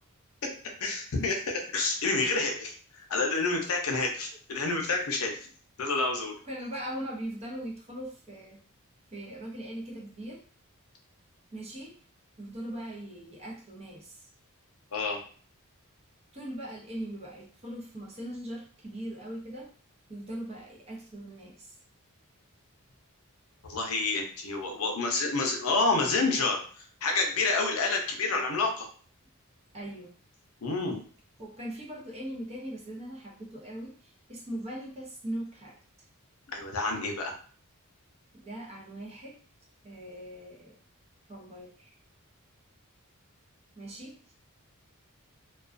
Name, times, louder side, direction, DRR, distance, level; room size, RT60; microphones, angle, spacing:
voice 1, 0.8-5.3 5.8-6.4 14.9-15.2 23.6-28.9 30.6-31.0 36.5-37.3, left 3 dB, 70° left, 2 dB, 0.6 m, -29 dB
voice 2, 6.5-8.6 9.1-10.4 11.5-12.0 12.4-14.2 16.3-19.7 20.1-21.8 29.7-30.1 31.4-35.8 38.4-39.4 39.8-40.8 41.3-41.9 43.8-44.3, right 1 dB, 30° right, -2 dB, 0.6 m, -40 dB
2.3 x 2.2 x 2.4 m, 0.43 s
head